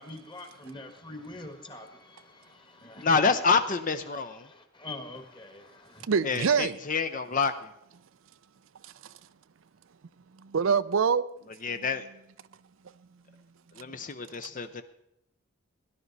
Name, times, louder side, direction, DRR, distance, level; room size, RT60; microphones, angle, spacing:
voice 1, 0.0-3.3 4.1-6.1, left 2 dB, 25° left, 1.6 m, -45 dB
voice 2, 3.0-4.5 6.2-7.5 11.6-12.0 13.8-14.8, left 4 dB, 40° left, 0.6 m, -27 dB
voice 3, 6.1-6.8 8.8-9.1 10.4-11.3 11.7-11.9, right 6 dB, 70° right, 0.5 m, -25 dB
17.5 x 11.5 x 4.1 m
head